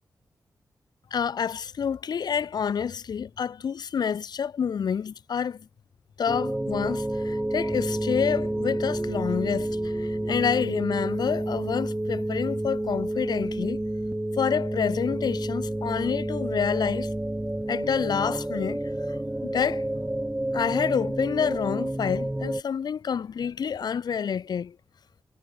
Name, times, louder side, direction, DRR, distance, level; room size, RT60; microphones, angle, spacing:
voice 1, 1.1-5.7 6.2-13.8 14.4-17.1 17.7-18.8 19.1-19.8 20.5-24.8, left 7 dB, 80° left, 4.9 m, -28 dB
sound 1, 6.3-22.6, right 1 dB, 15° right, 4.6 m, -29 dB
cardioid pair, 75°, 7 cm